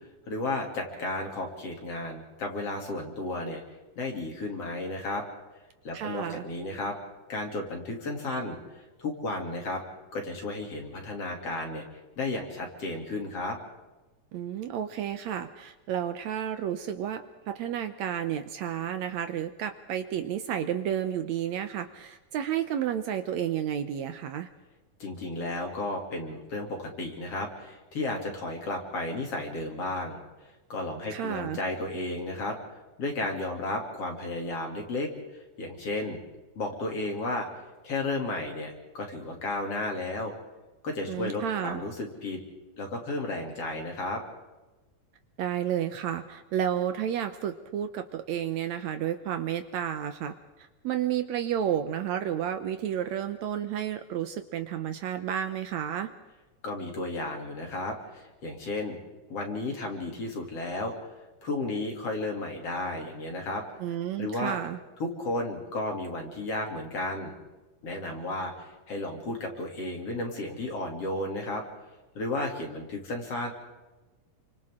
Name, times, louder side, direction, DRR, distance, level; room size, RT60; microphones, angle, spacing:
voice 1, 0.3-3.6 4.0-5.2 5.8-7.0 7.3-8.6 9.0-9.8 10.1-11.8 12.2-13.6 25.0-30.2 30.7-32.6 33.0-35.1 35.6-36.2 36.6-37.5 37.8-40.3 40.8-42.4 42.8-44.2 56.6-59.0 59.3-61.1 61.4-63.6 64.2-64.6 65.0-67.3 67.8-71.6 72.2-73.5, left 2 dB, 50° left, 1 dB, 3.8 m, -33 dB
voice 2, 5.9-6.4 14.3-24.5 31.1-31.6 41.1-41.8 45.4-50.3 50.6-56.1 63.8-64.8, right 10 dB, 70° right, 9 dB, 1.9 m, -31 dB
29.0 x 25.0 x 3.8 m, 1.1 s
omnidirectional pair, 3.6 m